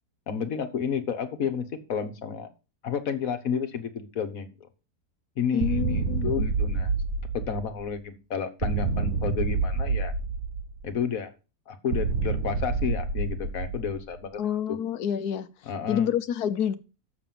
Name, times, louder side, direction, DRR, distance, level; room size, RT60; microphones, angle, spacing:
voice 1, 0.3-2.5 2.8-4.5 5.4-6.9 7.3-10.1 10.8-11.3 11.7-14.8 15.6-16.1, left 7 dB, 65° left, 1.6 m, -31 dB
voice 2, 5.5-6.5 14.4-15.5 15.9-16.8, left 9 dB, 80° left, 1.4 m, -28 dB
sound 1, 5.6-7.9 8.6-10.9 11.9-14.2, right 4 dB, 55° right, 1.1 m, -28 dB
7.0 x 6.8 x 7.5 m
omnidirectional pair, 1.6 m